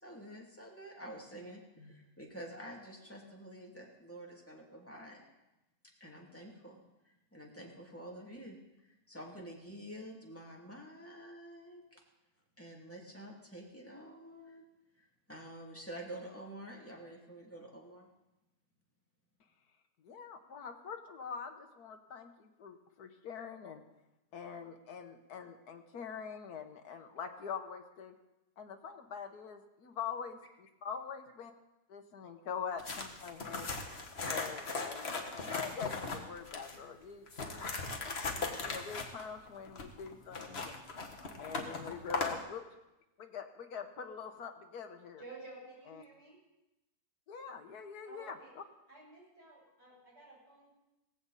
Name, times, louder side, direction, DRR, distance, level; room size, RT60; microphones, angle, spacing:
voice 1, 0.0-5.2 6.0-6.8 7.0-8.6 8.8-12.0 12.6-14.6 15.0-18.1, right 1 dB, 5° left, -2 dB, 2.5 m, -49 dB
voice 2, 20.0-23.8 24.3-28.1 28.6-31.5 31.9-33.7 34.3-40.8 41.4-42.6 43.2-45.2 45.9-46.0 47.3-48.6, left 6 dB, 65° left, 6 dB, 1.6 m, -44 dB
sound 1, 32.8-36.8 37.3-42.4, left 3 dB, 40° left, 1.6 m, -38 dB
voice 3, 45.2-46.4 48.0-48.5 48.9-50.7, right 3 dB, 35° right, -6 dB, 7.8 m, -53 dB
17.0 x 15.5 x 4.1 m, 0.96 s
omnidirectional pair, 1.8 m